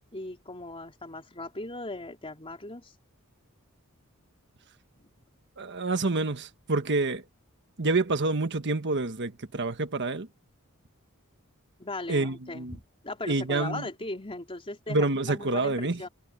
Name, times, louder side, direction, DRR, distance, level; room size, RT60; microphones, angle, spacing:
voice 1, 0.1-2.9 5.0-5.1 11.8-16.1, left 2 dB, 25° left, 3.7 m, -38 dB
voice 2, 5.6-7.2 7.8-10.3 12.1-12.8 13.3-13.9 14.9-16.0, right 3 dB, 55° right, 1.3 m, -27 dB
head